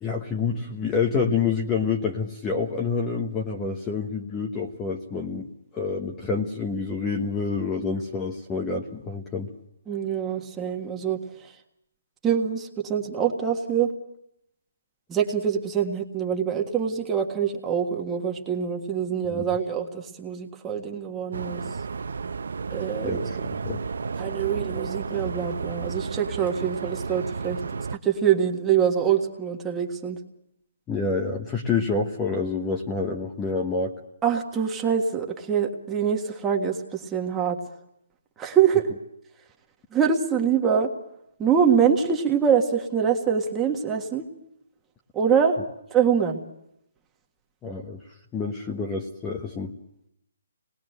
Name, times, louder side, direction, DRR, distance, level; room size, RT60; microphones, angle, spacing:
voice 1, 0.0-5.5 5.7-9.5 19.3-19.4 23.0-23.4 23.6-23.8 30.9-33.9 47.6-48.0 48.3-49.7, left 4 dB, 15° left, 2 dB, 1.2 m, -27 dB
voice 2, 9.9-11.5 12.2-13.9 15.1-21.6 22.7-23.5 24.2-27.6 27.9-30.2 34.2-37.6 38.4-38.9 39.9-40.9 41.4-44.3 45.1-45.6 45.9-46.4, right 7 dB, 10° right, 1 dB, 1.7 m, -24 dB
sound 1, 21.3-28.0, right 5 dB, 70° right, 0.9 m, -32 dB
26.5 x 20.0 x 7.9 m, 0.81 s
hypercardioid pair, 165°, 0 cm